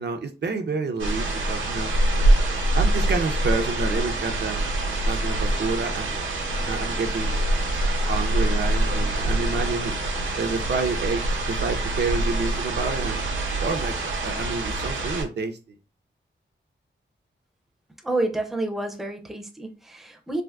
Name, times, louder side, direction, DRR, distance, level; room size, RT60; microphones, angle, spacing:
voice 1, 0.0-1.9 2.7-4.6 5.1-6.2 6.7-7.4 8.1-9.9 10.4-15.6, right 4 dB, 60° right, 0.5 m, -29 dB
sound 1, 1.0-15.2, right 1 dB, 90° right, 0.9 m, -25 dB
voice 2, 18.0-20.4, right 2 dB, ahead, 0.5 m, -29 dB
3.4 x 2.4 x 2.3 m
wide cardioid pair, 105°, 20 cm